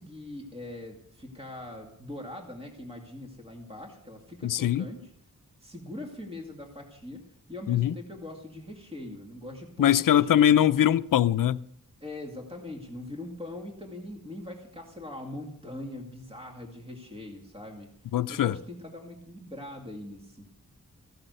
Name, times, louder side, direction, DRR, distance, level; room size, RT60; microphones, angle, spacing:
voice 1, 0.0-5.1 5.6-7.2 7.5-10.5 12.0-17.9 18.3-20.5, left 1 dB, 20° right, 2.2 m, -41 dB
voice 2, 4.4-4.9 7.7-7.9 9.8-11.6 18.1-18.5, left 11 dB, 75° left, 0.5 m, -22 dB
15.5 x 11.5 x 6.7 m
wide cardioid pair, 145°, 32 cm